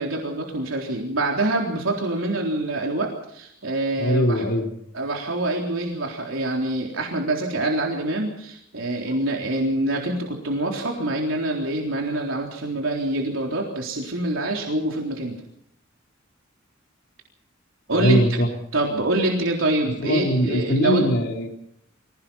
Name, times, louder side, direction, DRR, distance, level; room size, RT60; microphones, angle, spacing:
voice 1, 0.0-4.4 4.9-15.3 17.9-18.2 18.7-21.0, right 2 dB, 80° right, 0 dB, 3.8 m, -25 dB
voice 2, 4.0-4.6 17.9-18.5 20.0-21.6, equal, 60° left, 2 dB, 3.4 m, -21 dB
25.0 x 18.0 x 5.8 m, 0.75 s
head